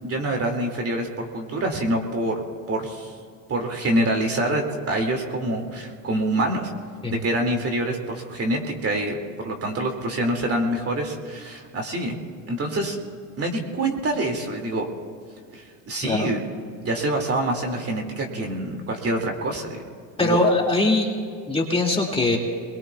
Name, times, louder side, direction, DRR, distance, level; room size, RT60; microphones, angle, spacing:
voice 1, 0.0-3.1 3.5-6.7 7.1-12.2 12.5-13.0 13.4-14.8 15.5-16.4 16.8-19.7 20.2-20.4, right 1 dB, 30° right, 2 dB, 2.5 m, -26 dB
voice 2, 20.2-21.2 21.5-22.4, left 2 dB, 10° left, -1 dB, 2.4 m, -21 dB
25.5 x 21.5 x 2.4 m, 2.2 s
supercardioid pair, 95°, 45 cm